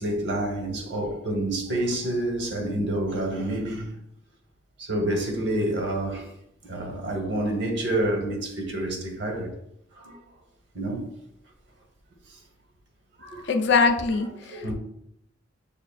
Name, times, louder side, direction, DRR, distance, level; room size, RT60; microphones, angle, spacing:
voice 1, 0.0-3.9 4.8-6.3 6.6-9.5 10.0-10.2 10.7-11.1 13.2-13.5 14.4-14.7, right 1 dB, 60° right, 0.9 m, -28 dB
voice 2, 13.5-14.7, left 4 dB, 60° left, 0.4 m, -22 dB
6.8 x 2.5 x 2.3 m
head